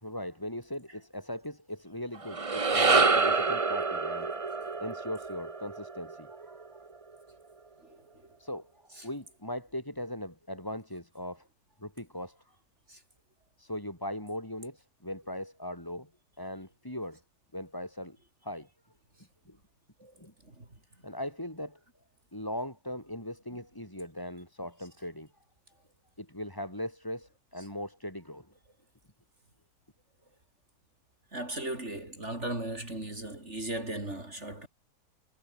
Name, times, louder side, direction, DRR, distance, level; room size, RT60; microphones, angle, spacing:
voice 1, 0.0-4.3 4.8-6.6 8.4-8.7 9.0-11.5 11.8-12.4 13.6-16.1 16.4-17.2 17.5-18.2 18.4-18.7 19.5-19.6 20.2-20.3 21.0-21.8 22.3-25.3 26.2-28.5, left 1 dB, 15° left, 4.3 m, -39 dB
sound 1, 2.2-6.6, right 4 dB, 25° right, 1.0 m, -27 dB
voice 2, 7.8-8.3 8.9-9.1 12.9-13.0 20.0-20.1 20.4-20.7 31.3-34.7, right 1 dB, 45° right, 5.6 m, -37 dB
omnidirectional pair, 1.7 m